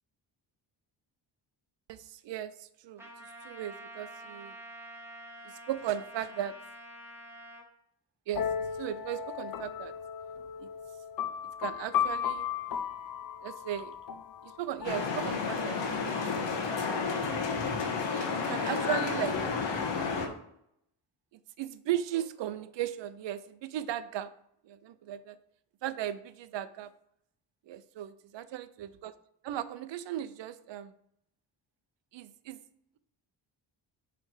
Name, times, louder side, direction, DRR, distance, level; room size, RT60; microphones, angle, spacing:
voice 1, 1.9-4.6 5.4-6.5 8.3-8.5 8.8-9.9 10.6-10.7 11.6-12.5 13.4-14.0 14.4-15.8 16.0-16.2 18.1-19.4 21.6-24.3 24.6-25.4 25.8-26.9 27.7-29.1 29.4-30.9 32.1-32.6, right 11 dB, 75° right, 14 dB, 0.6 m, -36 dB
Trumpet, 3.0-7.7, right 1 dB, 5° right, 1.2 m, -47 dB
sound 1, 8.3-15.9, left 8 dB, 50° left, 0.6 m, -36 dB
sound 2, 14.8-20.3, left 5 dB, 70° left, 1.2 m, -31 dB
8.4 x 3.4 x 4.8 m, 0.74 s
cardioid pair, 125°, 44 cm